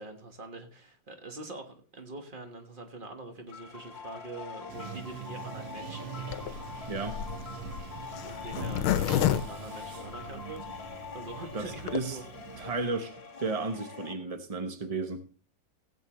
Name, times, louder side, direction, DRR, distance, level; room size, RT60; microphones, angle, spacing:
voice 1, 0.0-6.2 8.3-10.7 11.1-12.2, right 2 dB, 30° right, 6 dB, 1.2 m, -44 dB
sound 1, 3.5-14.1, left 5 dB, 35° left, 1.5 m, -44 dB
Bathtub (filling or washing), 4.7-12.9, right 10 dB, 85° right, 1.6 m, -44 dB
Zipper (clothing), 6.3-10.6 11.1-11.2 11.3-11.4 11.7-12.0, left 11 dB, 85° left, 1.5 m, -30 dB
voice 2, 6.9-7.2 11.5-12.2 12.6-13.1 13.4-15.2, right 3 dB, 50° right, 7 dB, 0.4 m, -33 dB
17.0 x 8.2 x 3.0 m, 0.39 s
omnidirectional pair, 2.3 m